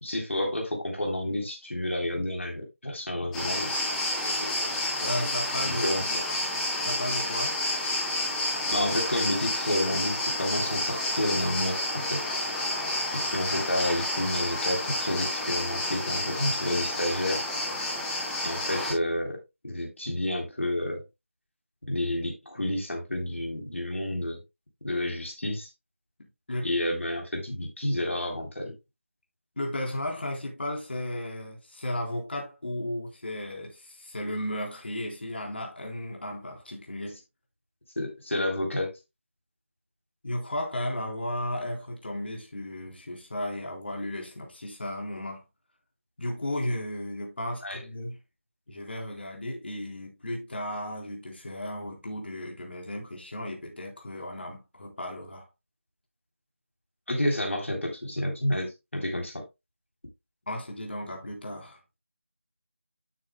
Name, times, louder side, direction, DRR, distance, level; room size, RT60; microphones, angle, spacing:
voice 1, 0.0-3.7 4.4-4.5 5.8-6.2 8.7-12.2 13.1-17.4 18.4-21.0 21.8-24.4 24.8-25.7 26.6-28.7 38.0-38.9 47.6-47.8 57.1-59.4, left 1 dB, 70° left, 3.5 m, -30 dB
sound 1, 3.3-18.9, left 1 dB, 5° left, 2.2 m, -30 dB
voice 2, 5.0-5.8 6.8-7.6 13.6-13.7 26.5-26.7 29.6-37.2 40.2-45.4 46.2-48.2 48.7-55.5 60.5-61.8, left 1 dB, 55° left, 3.8 m, -34 dB
12.0 x 6.7 x 2.2 m
figure-of-eight pair, 165°, 7 cm